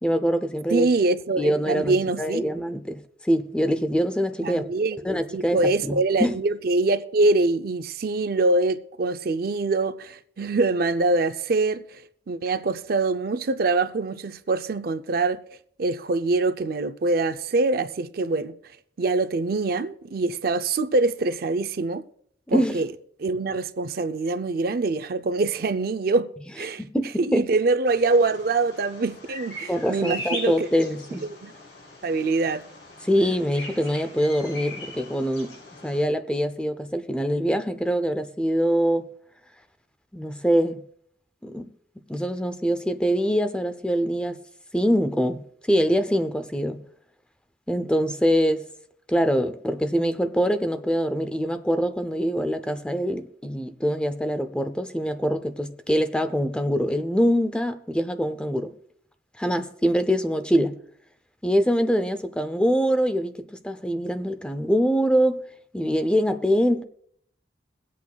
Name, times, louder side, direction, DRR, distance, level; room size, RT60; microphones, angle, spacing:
voice 1, 0.0-0.9 1.4-4.7 5.0-6.3 22.5-22.8 26.8-27.5 29.7-31.3 33.0-35.5 35.8-39.1 40.1-40.8 41.4-41.7 42.1-44.4 44.7-45.4 45.7-46.8 47.7-48.7 49.1-58.7 59.4-60.8 61.4-63.3 63.6-65.4 65.7-66.8, equal, 5° left, 0.5 m, -24 dB
voice 2, 0.7-2.4 4.4-15.4 15.8-18.5 19.0-22.1 22.5-22.9 23.2-26.3 26.6-26.8 27.2-30.7 31.4-31.5 32.0-32.6, right 3 dB, 55° right, 0.5 m, -24 dB
Bird vocalization bird call bird song, 27.9-36.0, left 1 dB, 80° left, 5.2 m, -40 dB
22.5 x 8.3 x 2.3 m
head